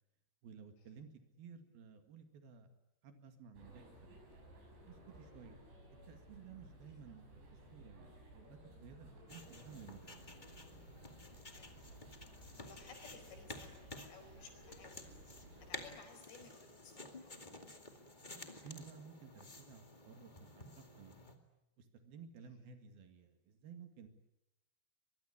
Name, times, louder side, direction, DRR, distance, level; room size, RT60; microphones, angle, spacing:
voice 1, 0.4-1.1 1.4-2.7 3.0-4.2 4.9-5.6 6.1-10.2 18.6-21.1 21.8-24.1, right 6 dB, 65° right, 7 dB, 3.9 m, -55 dB
sound 1, 3.5-16.0, right 1 dB, 85° right, 8.6 m, -58 dB
sound 2, 9.3-21.4, left 2 dB, 25° left, 1.1 m, -53 dB
voice 2, 12.6-15.1 15.7-17.5, left 5 dB, 85° left, 6 dB, 6.7 m, -58 dB
23.5 x 22.5 x 9.5 m, 0.88 s
omnidirectional pair, 4.8 m